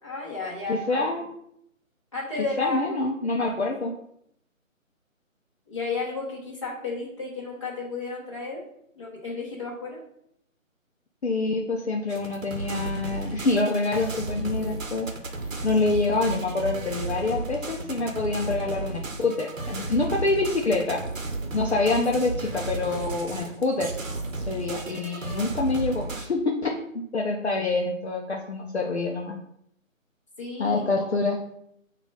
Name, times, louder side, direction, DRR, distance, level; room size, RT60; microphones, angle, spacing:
voice 1, 0.0-1.1 2.1-3.0 3.4-3.5 5.7-8.6 9.0-10.0 30.4-31.1, left 3 dB, 25° left, -7 dB, 1.0 m, -33 dB
voice 2, 0.7-1.3 2.6-3.9 11.2-15.1 15.6-21.0 21.5-23.9 24.5-29.4 30.6-31.4, left 3 dB, 55° left, -1 dB, 0.5 m, -26 dB
sound 1, 12.1-26.3, right 2 dB, 70° right, 0.9 m, -33 dB
5.2 x 2.4 x 3.9 m, 0.72 s
figure-of-eight pair, 170°, 41 cm